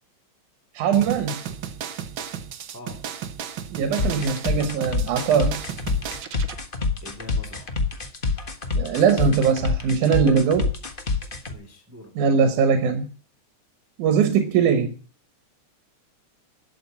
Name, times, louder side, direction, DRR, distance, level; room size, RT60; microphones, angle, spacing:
voice 1, 0.7-1.4 3.7-5.7 8.8-10.7 12.2-13.1 14.0-14.9, right 6 dB, 90° right, 8 dB, 2.7 m, -21 dB
sound 1, 0.9-6.6, right 8 dB, 65° right, 1.2 m, -34 dB
voice 2, 2.7-3.1 7.0-7.7 8.7-9.0 11.4-12.2, left 1 dB, 5° right, 5 dB, 1.9 m, -43 dB
sound 2, 4.0-11.5, left 4 dB, 65° left, 0.5 m, -26 dB
12.0 x 7.8 x 8.4 m, 0.39 s
omnidirectional pair, 3.4 m